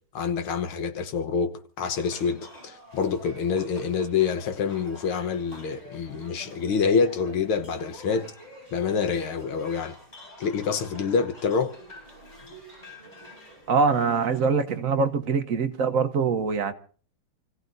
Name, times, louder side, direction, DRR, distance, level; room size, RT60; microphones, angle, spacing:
voice 1, 0.1-8.3 8.7-10.0 10.4-11.7, left 5 dB, 75° left, 2.0 m, -26 dB
sound 1, 1.9-14.5, left 1 dB, 20° left, 4.7 m, -47 dB
voice 2, 13.7-16.7, right 5 dB, 50° right, 1.1 m, -23 dB
29.0 x 15.5 x 2.7 m
omnidirectional pair, 2.4 m